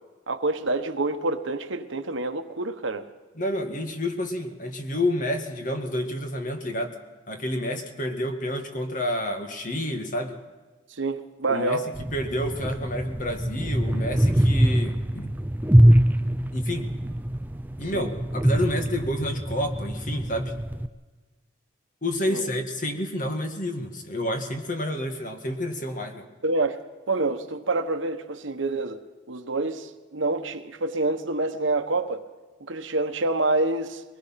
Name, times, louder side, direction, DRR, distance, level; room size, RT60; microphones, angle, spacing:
voice 1, 0.3-3.1 10.9-11.9 17.9-18.1 22.3-22.4 26.4-26.8 27.1-29.0 29.3-32.3 32.6-34.0, right 2 dB, 75° right, 1.3 m, -27 dB
voice 2, 3.4-7.0 7.3-10.4 11.5-15.4 16.5-16.9 17.8-20.5 22.0-26.3, left 1 dB, 40° left, 2.0 m, -29 dB
sound 1, 11.9-20.9, equal, 10° right, 0.5 m, -23 dB
22.5 x 19.5 x 5.9 m
head